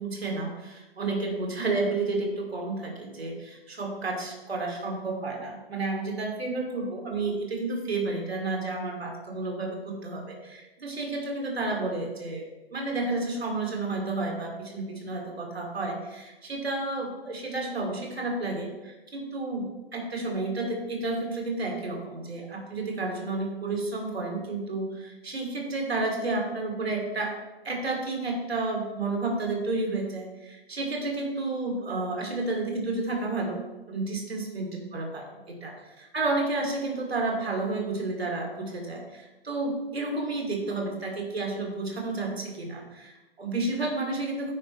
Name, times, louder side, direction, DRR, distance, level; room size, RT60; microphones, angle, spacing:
voice 1, 0.0-19.7 19.9-27.3 27.6-33.6 33.9-44.5, right 2 dB, 70° right, 1 dB, 2.9 m, -31 dB
9.7 x 9.7 x 3.3 m, 1.1 s
figure-of-eight pair, 125°, 32 cm